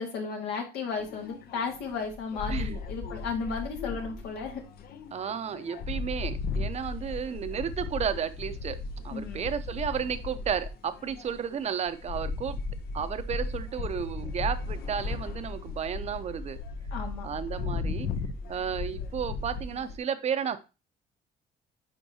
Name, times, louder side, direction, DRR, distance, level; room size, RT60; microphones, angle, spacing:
voice 1, 0.0-4.6 9.1-9.4 16.9-17.3, left 5 dB, 85° left, 2 dB, 1.9 m, -34 dB
sound 1, 1.0-20.0, left 4 dB, 65° left, 0.7 m, -36 dB
voice 2, 2.5-2.8 5.1-12.6 12.9-16.6 17.2-18.1 18.5-20.6, right 7 dB, 40° right, 12 dB, 0.7 m, -33 dB
10.0 x 3.8 x 2.8 m, 0.29 s
cardioid pair, 110°, 17 cm